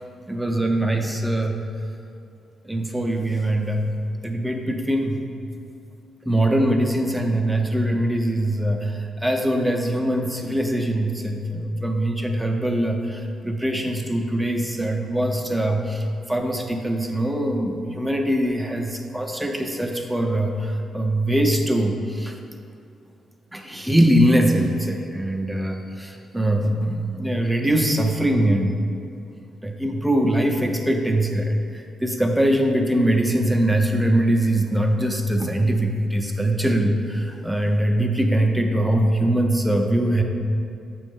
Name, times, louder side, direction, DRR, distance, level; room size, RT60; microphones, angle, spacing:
voice 1, 0.3-1.6 2.6-3.9 4.2-5.2 6.3-22.3 23.5-28.8 29.6-40.2, right 1 dB, 5° right, 2 dB, 0.6 m, -22 dB
7.5 x 3.1 x 5.4 m, 2.5 s
cardioid pair, 115°, 0 cm